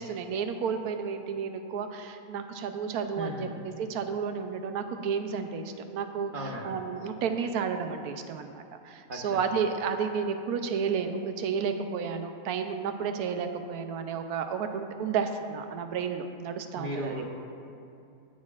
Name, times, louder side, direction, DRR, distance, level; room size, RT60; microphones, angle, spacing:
voice 1, 0.0-17.2, right 6 dB, 85° right, 7 dB, 1.1 m, -32 dB
voice 2, 3.2-3.5 6.3-6.7 9.1-9.4 16.7-17.2, right 1 dB, 40° right, -1 dB, 1.0 m, -35 dB
16.5 x 6.3 x 2.4 m, 2.6 s
omnidirectional pair, 1.6 m